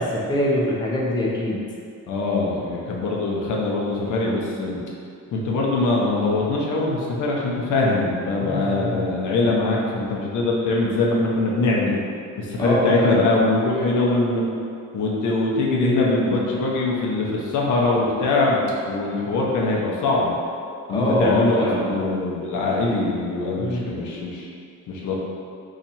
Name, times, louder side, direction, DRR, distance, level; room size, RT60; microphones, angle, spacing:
voice 1, 0.0-1.6 8.4-9.1 12.6-13.3 20.9-21.9 23.6-23.9, left 1 dB, 15° left, -5 dB, 0.5 m, -23 dB
voice 2, 2.1-4.8 5.3-12.0 12.4-14.4 14.9-20.4 20.9-24.5 24.9-25.2, left 2 dB, 70° left, -3 dB, 0.7 m, -22 dB
2.8 x 2.4 x 4.1 m, 2.4 s
cardioid pair, 105°, 31 cm